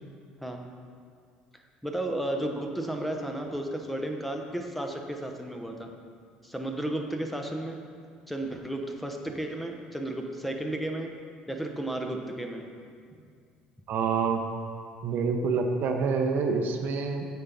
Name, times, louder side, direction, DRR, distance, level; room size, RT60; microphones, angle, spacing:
voice 1, 1.8-5.9 6.4-7.8 8.3-11.1 11.5-12.7, right 1 dB, ahead, 3 dB, 0.9 m, -33 dB
voice 2, 13.9-14.4 15.0-17.3, right 5 dB, 55° right, 4 dB, 0.7 m, -27 dB
8.2 x 4.5 x 5.4 m, 2.2 s
hypercardioid pair, 65°, 4 cm